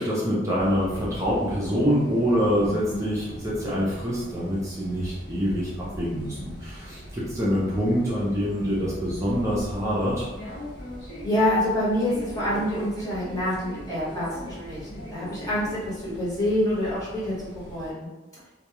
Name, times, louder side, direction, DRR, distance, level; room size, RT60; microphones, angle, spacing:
voice 1, 0.0-10.3, equal, 15° right, -7 dB, 0.5 m, -25 dB
sound 1, 0.6-17.9, equal, 60° left, 0.8 m, -41 dB
voice 2, 11.2-18.1, left 1 dB, 20° left, -10 dB, 1.0 m, -27 dB
2.2 x 2.2 x 2.9 m, 1.1 s
head